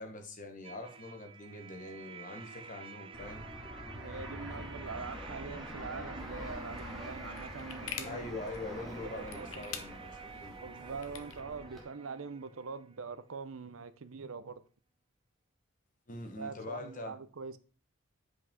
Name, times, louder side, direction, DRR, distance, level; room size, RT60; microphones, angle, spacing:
voice 1, 0.0-3.4 8.0-10.6 16.1-17.1, left 2 dB, 40° left, 1.3 m, -43 dB
sound 1, 0.6-13.3, right 5 dB, 25° right, 0.5 m, -50 dB
Fixed-wing aircraft airplane, 3.1-11.8, equal, ahead, 1.8 m, -45 dB
voice 2, 3.9-8.3 9.0-9.6 10.6-14.6 16.4-17.6, right 5 dB, 80° right, 0.6 m, -43 dB
sound 2, 6.2-11.4, left 8 dB, 85° left, 0.8 m, -48 dB
8.0 x 5.2 x 3.7 m
head